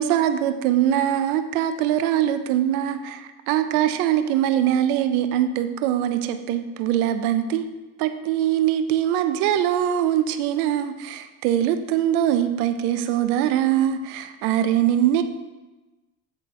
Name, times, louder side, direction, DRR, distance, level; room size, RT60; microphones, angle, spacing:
voice 1, 0.0-7.6 8.0-15.2, right 11 dB, 85° right, 9 dB, 0.6 m, -22 dB
8.8 x 3.8 x 3.6 m, 1.1 s
supercardioid pair, 75°, 43 cm